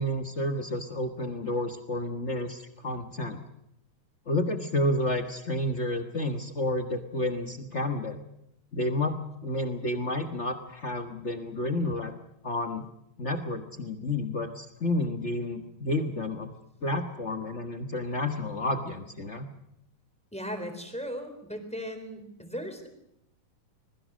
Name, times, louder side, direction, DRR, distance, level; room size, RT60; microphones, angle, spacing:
voice 1, 0.0-3.4 4.3-8.2 8.7-9.2 9.4-12.1 12.4-12.9 13.2-16.5 16.8-19.5, left 1 dB, 90° left, 5 dB, 0.6 m, -30 dB
voice 2, 20.3-22.9, equal, ahead, 6 dB, 3.6 m, -37 dB
25.5 x 21.5 x 6.5 m, 0.80 s
omnidirectional pair, 3.7 m